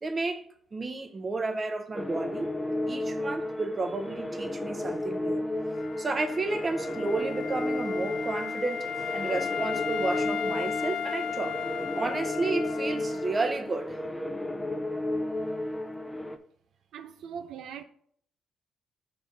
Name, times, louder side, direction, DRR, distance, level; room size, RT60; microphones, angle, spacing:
voice 1, 0.0-0.4 0.7-2.6 2.9-5.5 6.0-11.6 11.9-14.0, right 3 dB, 30° right, 0.9 m, -32 dB
sound 1, 1.9-16.4, left 1 dB, 10° left, 0.6 m, -33 dB
Wind instrument woodwind instrument, 5.7-13.5, left 7 dB, 70° left, 0.3 m, -35 dB
voice 2, 16.9-17.8, right 7 dB, 80° right, 0.5 m, -40 dB
6.5 x 4.0 x 5.3 m
cardioid pair, 90°, 0 cm